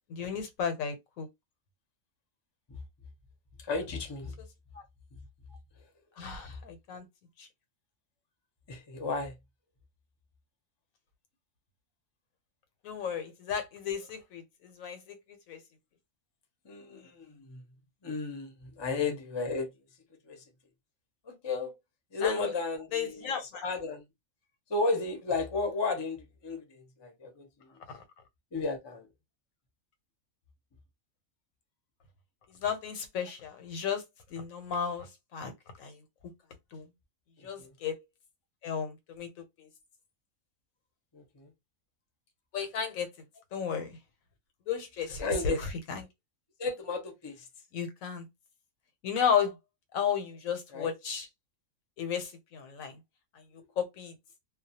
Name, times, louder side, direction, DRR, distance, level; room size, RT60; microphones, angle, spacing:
voice 1, 0.1-1.3 4.7-4.8 6.2-7.0 7.4-7.5 12.8-15.2 15.5-15.6 22.2-22.5 22.9-23.6 27.9-28.0 32.5-34.0 34.3-35.5 35.8-36.0 36.7-36.8 37.4-38.0 38.6-39.3 39.6-39.7 42.5-43.1 43.5-44.0 44.7-46.0 47.7-48.3 49.0-49.5 49.9-51.3 52.0-53.0 53.8-54.1, left 7 dB, 85° left, 1.1 m, -33 dB
voice 2, 3.6-4.3 8.7-9.3 16.6-17.6 18.0-19.7 20.2-20.4 21.2-21.7 22.1-24.0 24.7-27.7 28.5-29.1 37.4-37.7 41.1-41.5 45.2-45.6 46.6-47.5 50.7-50.9 53.6-53.7, left 3 dB, 30° left, 0.5 m, -34 dB
2.3 x 2.2 x 2.7 m
omnidirectional pair, 1.4 m